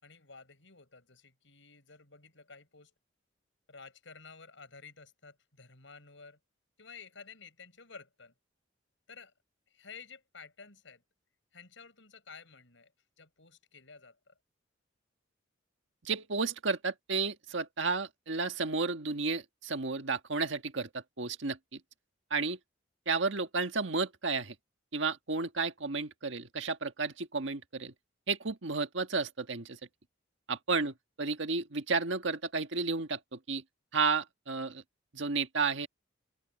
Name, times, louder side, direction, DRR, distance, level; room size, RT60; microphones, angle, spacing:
voice 1, 0.0-2.9 3.7-6.4 6.8-8.3 9.1-9.3 9.7-11.0 11.5-12.9 13.2-14.3 30.7-30.9, left 5 dB, 75° left, 6.9 m, -52 dB
voice 2, 16.0-21.8 22.3-22.6 23.1-24.6 24.9-27.9 28.3-29.8 30.5-33.6 33.9-34.8 35.1-35.9, right 4 dB, 75° right, 1.6 m, -32 dB
open air
head